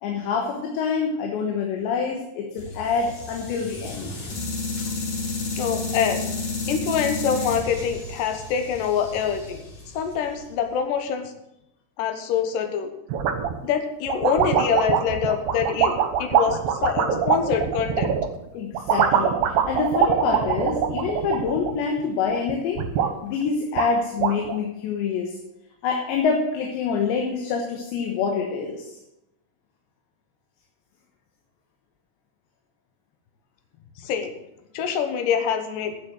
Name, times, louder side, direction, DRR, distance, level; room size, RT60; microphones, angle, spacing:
voice 1, 0.0-4.1 18.5-22.8 23.2-25.3 25.8-29.0, left 5 dB, 90° left, 1 dB, 3.6 m, -26 dB
sound 1, 2.6-10.7, left 3 dB, 50° left, 3.5 m, -32 dB
voice 2, 5.5-6.2 6.7-9.6 9.9-11.3 12.0-12.9 13.6-18.1 34.0-34.3 34.7-35.9, left 7 dB, 65° left, 7 dB, 2.4 m, -25 dB
sound 2, 13.1-13.6 14.1-18.3 18.7-22.0 22.3-23.1 23.5-23.6 23.8-24.6, right 8 dB, 70° right, 2.5 m, -23 dB
9.8 x 7.3 x 7.8 m, 0.86 s
omnidirectional pair, 4.9 m